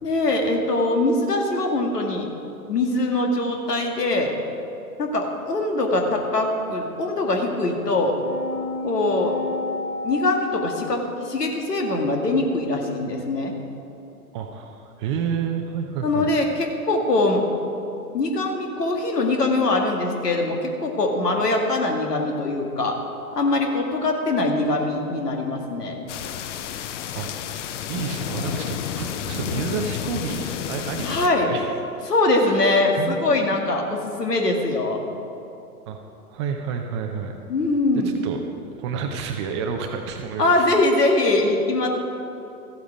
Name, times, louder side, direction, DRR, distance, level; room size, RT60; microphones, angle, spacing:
voice 1, 0.0-2.3 2.7-4.3 5.0-8.1 8.8-9.4 10.0-13.5 16.0-17.4 18.1-23.0 23.3-26.0 31.0-31.5 32.1-35.0 37.5-38.2 40.4-41.9, left 2 dB, 80° left, 2 dB, 2.0 m, -22 dB
sound 1, 7.5-12.5, left 3 dB, 5° left, 1.7 m, -33 dB
voice 2, 14.3-16.3 27.2-27.5 27.9-31.7 32.4-32.7 33.0-33.2 35.9-36.0 36.3-37.4 38.2-38.4 38.8-40.7, right 6 dB, 20° right, 4 dB, 0.4 m, -30 dB
sound 2, 26.1-31.3, left 9 dB, 50° left, 0.7 m, -31 dB
14.5 x 8.4 x 5.0 m, 2.8 s
hypercardioid pair, 115°, 47 cm